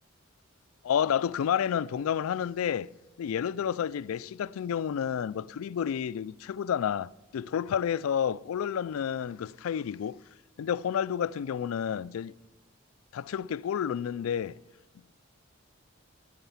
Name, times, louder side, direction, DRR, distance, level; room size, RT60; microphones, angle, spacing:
voice 1, 0.8-2.9 3.2-10.2 10.6-12.4 13.1-14.6, left 8 dB, 85° left, 0.3 m, -30 dB
16.0 x 10.0 x 5.7 m
head